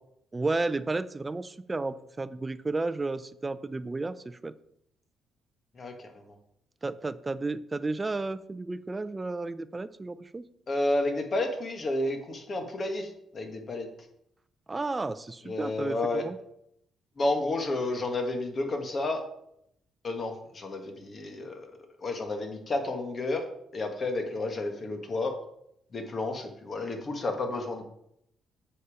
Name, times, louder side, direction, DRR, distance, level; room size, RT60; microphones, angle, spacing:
voice 1, 0.3-4.5 6.8-10.5 14.7-16.4, right 3 dB, 20° right, 15 dB, 0.5 m, -32 dB
voice 2, 5.8-6.3 10.7-13.9 15.5-16.3 17.2-19.2 20.0-21.7 22.0-23.4 23.7-25.3 25.9-27.8, left 2 dB, 40° left, 5 dB, 1.6 m, -31 dB
7.7 x 5.5 x 5.0 m, 0.75 s
cardioid pair, 90°, 0 cm